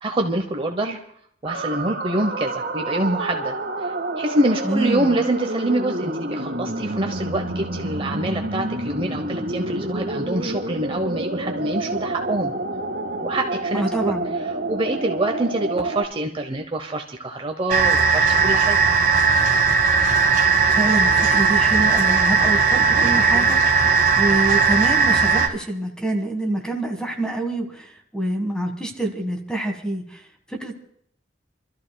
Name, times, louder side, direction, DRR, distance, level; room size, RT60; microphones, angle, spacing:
voice 1, 0.0-1.0 1.4-12.5 13.2-14.1 14.7-18.8, right 1 dB, 30° right, 4 dB, 0.8 m, -25 dB
sound 1, 1.4-16.0, right 2 dB, 75° right, 1.7 m, -28 dB
voice 2, 4.6-5.1 13.7-14.3 20.7-30.8, right 1 dB, 5° left, 4 dB, 1.6 m, -26 dB
sound 2, 17.7-25.5, right 5 dB, 45° right, 1.8 m, -17 dB
29.0 x 13.5 x 2.3 m, 0.67 s
head